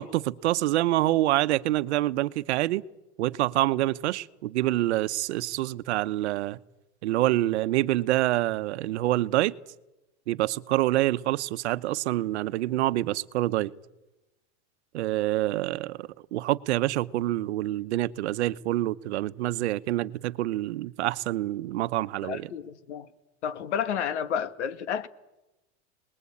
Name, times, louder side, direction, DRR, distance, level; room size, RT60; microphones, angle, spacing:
voice 1, 0.0-2.8 3.2-6.6 7.0-9.5 10.3-13.7 14.9-22.5, right 15 dB, 80° right, 1.0 m, -26 dB
voice 2, 22.2-23.1 23.4-25.1, left 8 dB, 90° left, 1.7 m, -31 dB
27.5 x 20.5 x 8.6 m
supercardioid pair, 145°, 33 cm